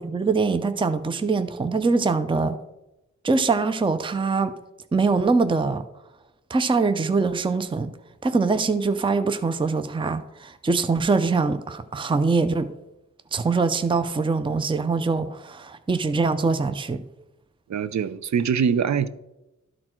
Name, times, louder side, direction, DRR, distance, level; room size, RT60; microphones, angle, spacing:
voice 1, 0.0-2.6 3.2-4.6 4.9-5.8 6.5-7.9 8.2-12.7 13.3-17.0, right 4 dB, 15° right, 0.5 m, -23 dB
voice 2, 17.7-19.1, right 7 dB, 65° right, 0.5 m, -23 dB
12.5 x 4.2 x 4.4 m
cardioid pair, 65°, 30 cm